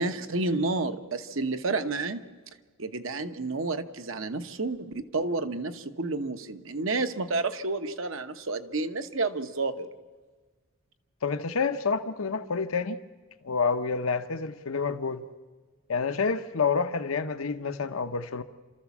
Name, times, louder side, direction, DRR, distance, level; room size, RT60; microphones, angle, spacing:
voice 1, 0.0-2.2 2.8-9.9, right 3 dB, 70° right, 1.1 m, -30 dB
voice 2, 11.2-13.0 13.4-15.2 15.9-18.4, left 5 dB, 85° left, 0.8 m, -28 dB
29.0 x 13.5 x 7.2 m
head